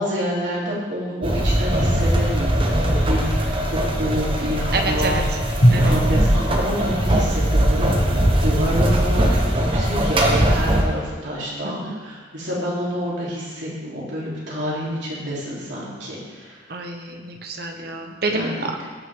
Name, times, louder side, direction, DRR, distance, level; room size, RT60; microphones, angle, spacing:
voice 1, 0.0-5.2 5.7-16.6 17.1-17.2 18.3-18.8, equal, 75° right, -6 dB, 3.4 m, -28 dB
sound 1, 1.2-10.8, right 1 dB, 30° right, 1.0 m, -20 dB
voice 2, 4.7-5.2 5.7-5.9 11.6-12.0 16.7-18.7, right 2 dB, 55° right, 3 dB, 1.1 m, -28 dB
Drum, 5.6-8.6, equal, 55° left, 1.8 m, -23 dB
17.0 x 6.4 x 3.7 m, 1.4 s
head